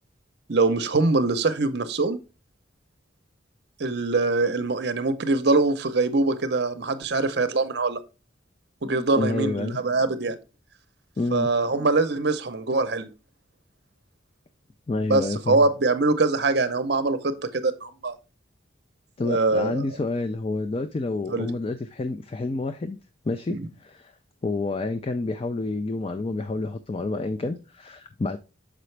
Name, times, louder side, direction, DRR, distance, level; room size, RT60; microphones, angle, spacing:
voice 1, 0.5-2.2 3.8-8.0 8.8-10.4 11.3-13.1 15.1-18.1 19.2-19.8 21.3-21.5 23.5-23.7, right 3 dB, 55° right, 0.7 m, -23 dB
voice 2, 9.0-9.8 11.2-11.5 14.9-15.6 19.2-23.0 23.3-24.1 24.4-28.4, left 2 dB, 30° left, 0.3 m, -29 dB
6.7 x 5.0 x 3.2 m
head